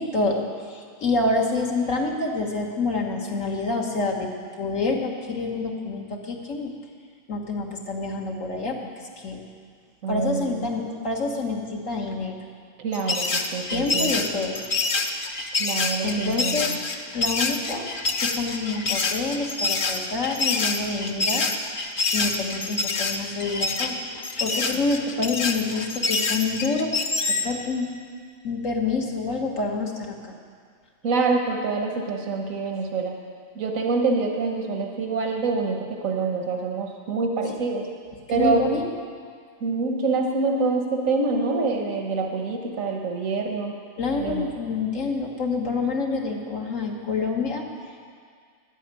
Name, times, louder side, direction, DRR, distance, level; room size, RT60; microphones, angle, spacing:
voice 1, 0.0-6.7 7.3-8.8 9.2-9.4 10.1-12.4 13.7-14.6 16.0-16.7 17.1-17.9 18.2-21.4 22.1-24.0 24.3-27.9 28.4-30.2 38.3-38.8 44.0-47.6, left 3 dB, 75° left, 0 dB, 1.9 m, -27 dB
voice 2, 10.0-10.7 12.8-14.2 15.6-16.8 24.7-24.8 31.0-33.2 33.5-37.9 38.3-38.7 39.6-43.8 44.2-44.4, right 4 dB, 90° right, 2 dB, 1.5 m, -26 dB
sound 1, 12.9-27.5, left 3 dB, 45° left, 0.9 m, -26 dB
11.0 x 9.1 x 8.9 m, 2.1 s
omnidirectional pair, 1.4 m